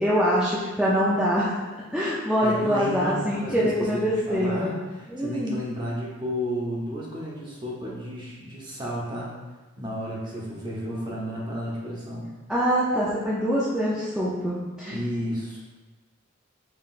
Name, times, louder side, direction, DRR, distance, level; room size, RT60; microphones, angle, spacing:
voice 1, 0.0-1.5 1.9-4.8 5.1-5.6 11.0-11.2 12.5-14.9, equal, 5° right, -9 dB, 0.5 m, -24 dB
voice 2, 2.4-9.4 9.8-12.3 14.8-15.6, equal, 25° right, -4 dB, 0.9 m, -32 dB
5.7 x 3.2 x 2.5 m, 1.2 s
head